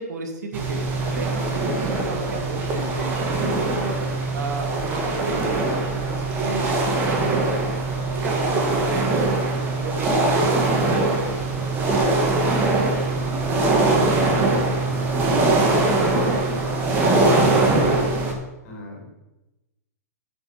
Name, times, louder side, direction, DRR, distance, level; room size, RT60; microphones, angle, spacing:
voice 1, 0.0-3.9 4.3-7.6 8.2-11.1 11.6-12.6, right 3 dB, 75° right, 3 dB, 2.4 m, -33 dB
sound 1, 0.5-18.3, right 2 dB, 20° right, 1.8 m, -22 dB
voice 2, 13.5-18.3 18.6-19.1, left 2 dB, 50° left, 0 dB, 4.3 m, -38 dB
8.7 x 7.9 x 5.9 m, 0.99 s
hypercardioid pair, 155°, 9 cm